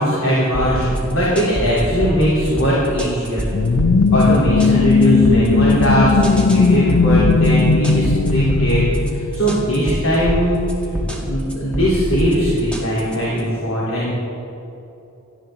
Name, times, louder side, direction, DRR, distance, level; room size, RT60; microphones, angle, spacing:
voice 1, 0.0-3.4 4.1-10.6 10.8-14.1, equal, 70° left, -8 dB, 3.8 m, -19 dB
sound 1, 0.5-13.4, equal, 5° left, 2.0 m, -25 dB
sound 2, 3.5-10.0, left 4 dB, 90° left, 0.6 m, -17 dB
18.5 x 14.0 x 3.9 m, 2.9 s
head